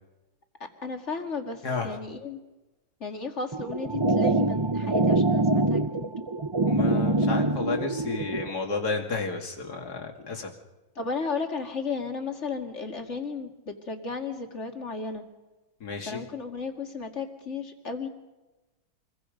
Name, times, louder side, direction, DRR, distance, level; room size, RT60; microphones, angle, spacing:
voice 1, 0.6-2.4 3.0-6.1 11.0-15.3 16.1-18.1, left 4 dB, 35° left, 4 dB, 2.5 m, -34 dB
voice 2, 1.6-2.0 6.7-10.5 15.8-16.2, left 4 dB, 55° left, 3 dB, 2.9 m, -32 dB
sound 1, 3.5-8.5, right 2 dB, 35° right, 0.4 m, -24 dB
27.5 x 22.5 x 5.3 m, 1.1 s
omnidirectional pair, 2.1 m